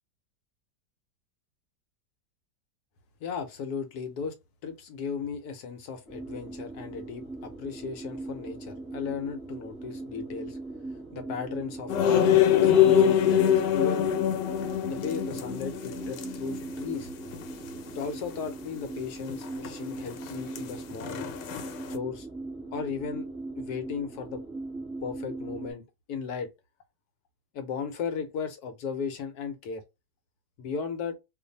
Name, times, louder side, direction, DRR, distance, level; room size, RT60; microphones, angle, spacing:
voice 1, 3.2-4.3 4.6-10.6 11.1-14.1 14.8-17.1 17.9-21.2 21.9-22.3 22.7-23.3 23.6-24.4 25.0-26.5 27.5-29.8 30.6-31.2, left 6 dB, 70° left, 1.1 m, -36 dB
sound 1, 6.1-25.7, right 2 dB, ahead, 1.1 m, -39 dB
sound 2, 11.9-16.7 17.0-17.1 17.3-17.4 19.3-19.7 20.0-21.9, left 9 dB, 90° left, 1.2 m, -24 dB
2.5 x 2.5 x 3.9 m
omnidirectional pair, 1.9 m